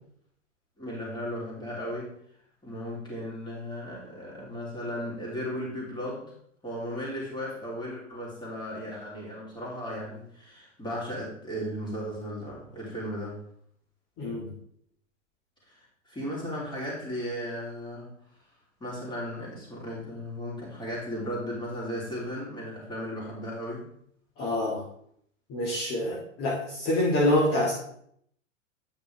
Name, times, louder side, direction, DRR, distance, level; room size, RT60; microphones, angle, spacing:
voice 1, 0.8-2.1 2.6-6.3 6.6-13.4 15.7-18.1 18.8-23.8, equal, 10° left, -5 dB, 3.2 m, -36 dB
voice 2, 14.2-14.5 24.4-24.8 25.5-27.7, left 1 dB, 35° left, -4 dB, 1.9 m, -26 dB
9.0 x 5.9 x 3.4 m, 0.67 s
hypercardioid pair, 115°, 38 cm